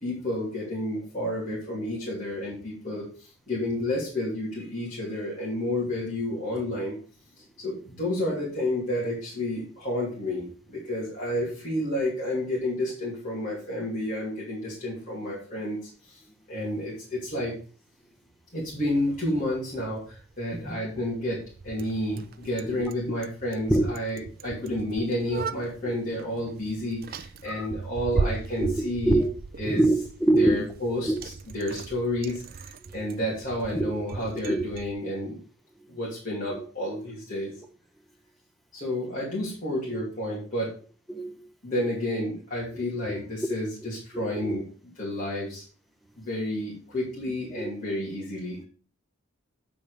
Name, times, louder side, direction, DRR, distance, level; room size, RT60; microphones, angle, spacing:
voice 1, 0.0-7.0 7.6-15.8 16.1-16.2 16.5-17.6 18.5-29.2 29.6-30.0 30.3-35.4 35.9-37.5 38.7-40.7 41.6-45.6 46.2-48.6, left 1 dB, 40° left, 2.7 m, -31 dB
Bicycle, 18.6-34.9, right 4 dB, 45° right, 0.4 m, -37 dB
voice 2, 28.6-29.3 29.6-30.6 31.1-31.2 32.8-33.1 33.7-33.8 34.5-34.6 35.8-36.0 39.9-40.0 41.1-41.4 42.7-42.8 44.1-44.5 47.5-47.6, right 1 dB, ahead, 0.9 m, -25 dB
9.2 x 5.2 x 4.9 m
head